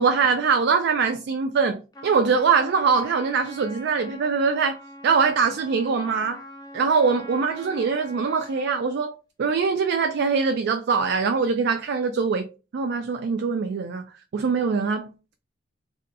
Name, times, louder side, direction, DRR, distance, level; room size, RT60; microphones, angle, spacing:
voice 1, 0.0-4.8 5.0-6.4 6.7-12.5 12.7-14.0 14.3-15.3, right 5 dB, 55° right, 0.3 m, -23 dB
Trumpet, 1.9-8.9, equal, 20° left, 0.4 m, -43 dB
2.7 x 2.2 x 3.9 m
head